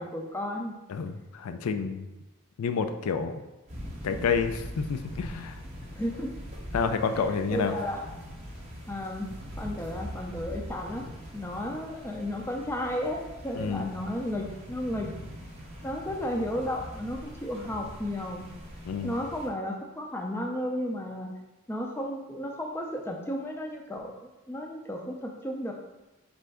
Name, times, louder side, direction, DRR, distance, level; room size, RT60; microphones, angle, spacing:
voice 1, 0.0-0.8 5.9-6.4 7.1-8.1 8.9-15.1 15.8-18.5 19.0-21.3 21.7-25.7, left 1 dB, 10° left, 1 dB, 0.4 m, -33 dB
voice 2, 0.9-2.0 2.6-3.4 4.0-5.6 6.7-7.8 13.6-13.9 18.8-19.1, left 5 dB, 90° left, 8 dB, 0.4 m, -29 dB
sound 1, 3.7-19.5, equal, 30° right, 0.8 m, -42 dB
3.9 x 3.3 x 3.5 m, 1.0 s
head